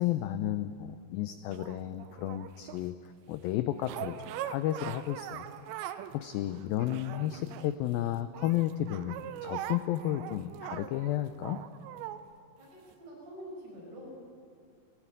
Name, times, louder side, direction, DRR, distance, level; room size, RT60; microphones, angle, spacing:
voice 1, 0.0-5.5 5.9-11.6, left 13 dB, 90° left, 10 dB, 2.0 m, -33 dB
sound 1, 1.5-2.9 3.8-6.2 6.5-8.0 8.3-12.2 12.9-13.0, right 11 dB, 90° right, 3.0 m, -41 dB
voice 2, 12.6-14.1, equal, 70° right, -3 dB, 8.3 m, -46 dB
18.5 x 17.0 x 8.9 m, 2.3 s
omnidirectional pair, 4.9 m